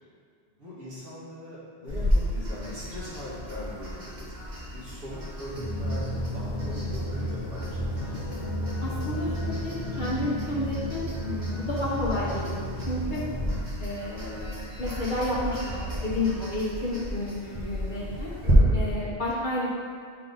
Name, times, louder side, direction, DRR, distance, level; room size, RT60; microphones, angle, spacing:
voice 1, 0.6-4.3 4.7-6.1 6.3-8.2 11.6-12.0 18.4-19.2, left 1 dB, 60° right, -8 dB, 2.0 m, -41 dB
sound 1, 1.9-18.5, equal, 40° right, 1.4 m, -34 dB
sound 2, 5.5-13.5, equal, 85° left, 1.6 m, -32 dB
voice 2, 8.8-13.2 13.8-18.3 18.7-19.7, left 1 dB, 45° left, -6 dB, 1.3 m, -31 dB
7.4 x 4.6 x 4.0 m, 2.2 s
omnidirectional pair, 1.1 m